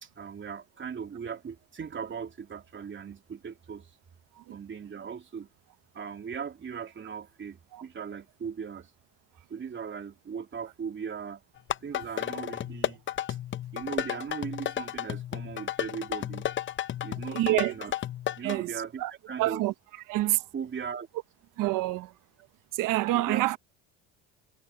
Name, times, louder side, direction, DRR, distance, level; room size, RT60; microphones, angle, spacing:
voice 1, 0.0-3.9 4.5-5.5 5.9-8.9 9.5-11.4 11.8-13.0 13.3-13.4 13.7-16.5 17.0-17.9 18.4-19.6 20.5-21.1 23.1-23.5, right 6 dB, 35° right, 3.4 m, -38 dB
sound 1, 11.6-18.6, left 11 dB, 35° left, 0.7 m, -33 dB
voice 2, 17.3-17.7 18.4-18.7 19.0-19.1 19.4-19.7 20.1-20.4 21.6-22.1 22.7-23.6, right 17 dB, 65° right, 1.3 m, -27 dB
supercardioid pair, 90°, 35 cm